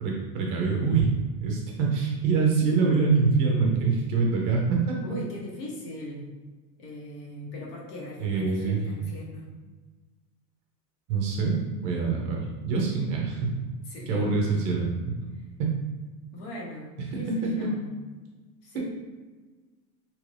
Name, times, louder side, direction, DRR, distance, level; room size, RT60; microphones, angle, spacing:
voice 1, 0.0-1.1 1.4-4.9 8.2-8.8 11.1-13.6 14.1-15.2 15.6-15.7 17.1-17.7, right 4 dB, 35° right, -1 dB, 0.4 m, -25 dB
voice 2, 5.0-6.3 6.8-9.5 13.9-14.2 16.3-17.9 18.6-18.8, left 1 dB, 80° left, -3 dB, 1.2 m, -40 dB
2.8 x 2.4 x 3.1 m, 1.3 s
supercardioid pair, 145°, 48 cm